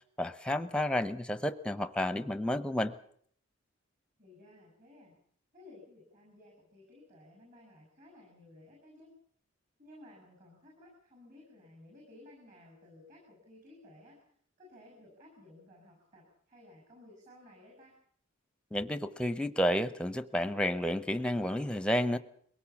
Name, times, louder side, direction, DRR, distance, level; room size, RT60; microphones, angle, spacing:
voice 1, 0.2-2.9 18.7-22.2, left 1 dB, 5° left, 13 dB, 0.8 m, -31 dB
voice 2, 4.2-5.1 5.5-9.1 9.8-14.2 14.6-18.0, left 1 dB, 40° right, 0 dB, 7.2 m, -56 dB
22.5 x 18.0 x 7.2 m, 0.62 s
head